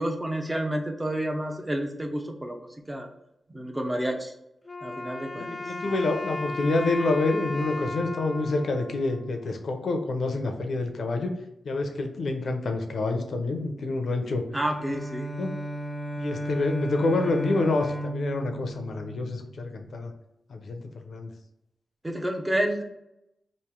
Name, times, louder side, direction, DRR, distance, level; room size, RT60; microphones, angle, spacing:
voice 1, 0.0-2.6 2.9-3.1 3.5-4.3 4.8-5.5 5.8-5.9 14.5-15.3 22.0-22.8, right 1 dB, 20° right, 3 dB, 0.7 m, -29 dB
Wind instrument woodwind instrument, 4.6-9.8, left 2 dB, 30° left, 0.4 m, -36 dB
voice 2, 5.4-11.3 11.6-14.4 15.4-15.5 16.2-20.1 20.5-21.3, left 2 dB, 70° left, 5 dB, 0.6 m, -27 dB
Bowed string instrument, 14.5-19.8, right 1 dB, 50° right, 1.5 m, -34 dB
3.1 x 2.6 x 3.6 m, 0.83 s
cardioid pair, 60°, 0 cm